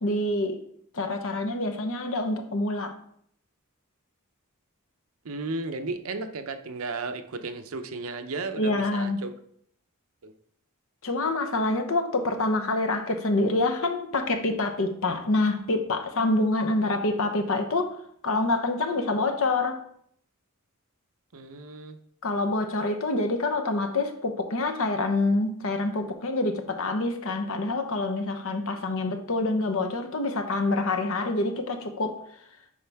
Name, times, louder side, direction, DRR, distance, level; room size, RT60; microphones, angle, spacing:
voice 1, 0.0-0.6 0.9-2.9 8.6-9.2 11.0-18.0 18.2-19.8 22.2-32.2, left 2 dB, 65° left, 5 dB, 0.9 m, -26 dB
voice 2, 5.2-9.3 10.2-10.3 21.3-22.0, right 3 dB, 70° right, 7 dB, 0.7 m, -34 dB
10.0 x 4.2 x 3.5 m, 0.67 s
head